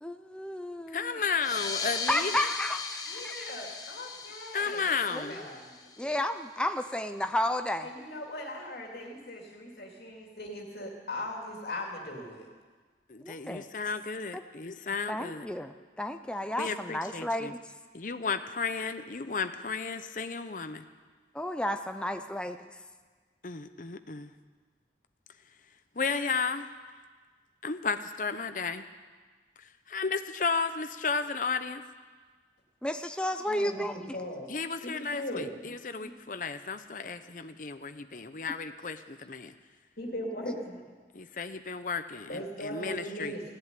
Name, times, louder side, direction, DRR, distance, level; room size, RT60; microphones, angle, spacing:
voice 1, 0.0-1.1 2.1-2.8 5.1-5.5 6.0-7.9 13.2-13.7 14.3-14.4 15.1-17.6 21.3-22.7 32.8-34.2, left 1 dB, 5° left, 7 dB, 0.5 m, -32 dB
voice 2, 0.9-2.5 4.5-5.4 13.1-15.5 16.6-17.5 17.9-20.8 23.4-24.3 26.0-26.7 27.6-28.8 29.9-31.8 34.5-39.5 41.1-43.3, left 5 dB, 45° left, 9 dB, 0.7 m, -33 dB
sound 1, 1.3-6.4, left 4 dB, 20° left, 1.1 m, -38 dB
voice 3, 3.1-4.9 5.3-5.7 6.0-6.2 7.8-12.5 33.5-34.5 34.8-35.7 36.0-36.1 40.0-40.8 42.3-43.4, left 1 dB, 65° left, 0 dB, 2.6 m, -39 dB
16.5 x 7.8 x 9.7 m, 1.5 s
head